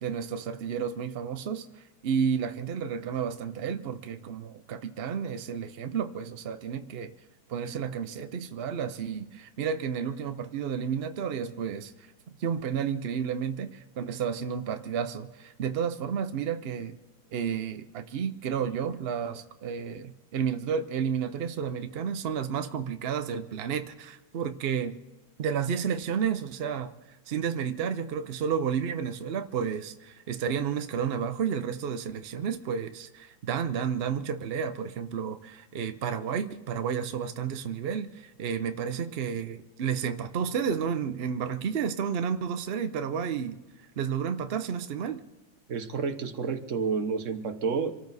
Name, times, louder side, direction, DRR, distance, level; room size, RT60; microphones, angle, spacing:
voice 1, 0.0-7.1 7.5-11.9 12.4-17.0 17.3-25.0 25.4-26.9 27.3-43.6 44.0-45.2, right 7 dB, 80° right, 9 dB, 0.5 m, -31 dB
voice 2, 45.7-47.9, right 5 dB, 50° right, 7 dB, 1.2 m, -30 dB
26.0 x 13.5 x 4.1 m, 1.1 s
omnidirectional pair, 2.0 m